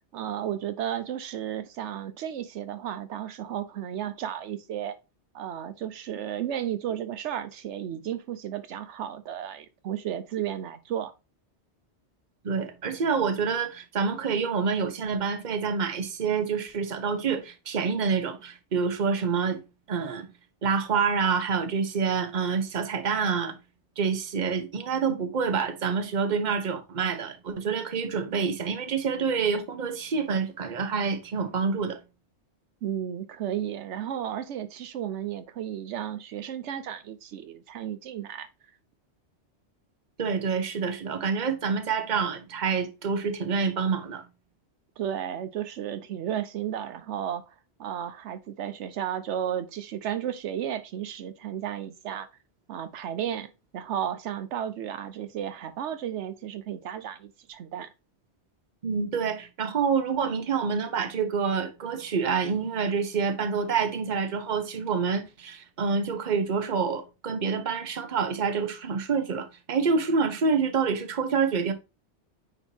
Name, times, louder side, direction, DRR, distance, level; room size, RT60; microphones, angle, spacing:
voice 1, 0.1-5.0 5.3-11.1 32.8-38.5 45.0-47.4 47.8-52.3 52.7-57.9, right 10 dB, 85° right, 1.0 m, -33 dB
voice 2, 12.4-19.6 19.9-20.3 20.6-23.6 24.0-32.0 40.2-44.2 58.8-71.7, right 5 dB, 45° right, 1.0 m, -27 dB
9.2 x 4.4 x 2.8 m
omnidirectional pair, 1.2 m